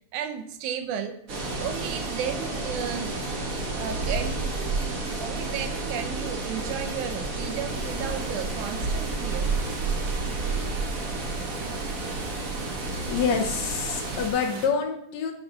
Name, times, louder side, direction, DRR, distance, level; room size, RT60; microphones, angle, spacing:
voice 1, 0.1-1.2 1.6-3.2 3.7-4.5 5.2-9.5, right 8 dB, 80° right, 8 dB, 2.2 m, -33 dB
sound 1, 1.3-14.3, right 3 dB, 45° right, 1.1 m, -30 dB
sound 2, 7.7-14.7, right 4 dB, 60° right, 2.4 m, -41 dB
voice 2, 13.1-15.3, left 6 dB, 70° left, 5 dB, 1.9 m, -26 dB
11.5 x 4.8 x 3.9 m, 0.72 s
omnidirectional pair, 3.5 m